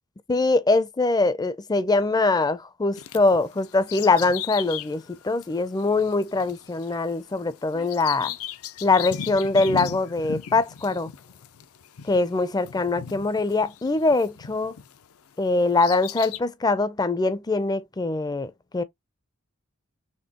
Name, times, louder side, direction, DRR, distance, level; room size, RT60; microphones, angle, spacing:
voice 1, 0.3-8.3 8.8-11.1 12.0-14.7 15.4-18.8, left 3 dB, 20° left, 0.4 m, -23 dB
Bird vocalization bird call bird song, 3.0-15.0 15.5-16.4, left 8 dB, 75° left, 0.5 m, -37 dB
4.3 x 3.4 x 2.8 m
head